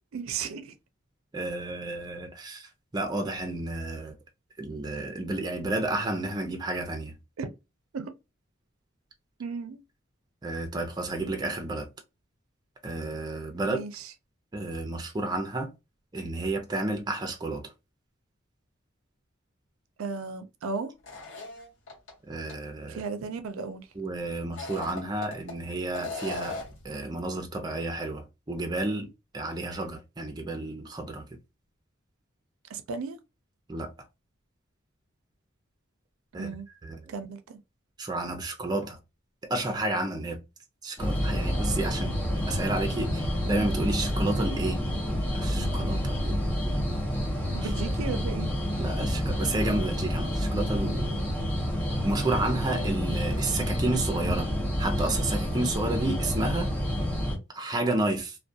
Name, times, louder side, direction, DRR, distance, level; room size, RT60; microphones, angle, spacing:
voice 1, 0.1-0.7 7.4-7.5 7.9-8.1 9.4-9.8 13.6-14.1 20.0-20.9 22.9-23.9 32.7-33.2 36.3-36.7 37.1-37.6 47.5-48.5, right 5 dB, 90° right, 0.4 m, -35 dB
voice 2, 1.3-4.2 4.6-7.1 10.4-11.9 12.8-13.8 14.5-15.7 16.1-17.7 22.3-23.0 24.0-31.4 33.7-33.9 36.3-36.5 36.8-37.1 38.0-39.0 39.4-40.4 40.8-42.2 42.5-44.8 45.3-46.4 47.6-47.7 48.8-51.2 52.0-54.5 54.8-56.7 57.5-58.4, right 2 dB, 20° right, 0.4 m, -31 dB
sound 1, 21.0-22.1 22.5-22.6 24.4-25.5 25.9-26.8, left 3 dB, 70° left, 1.1 m, -38 dB
sound 2, 41.0-57.4, equal, 10° left, 0.7 m, -29 dB
2.3 x 2.1 x 2.6 m
head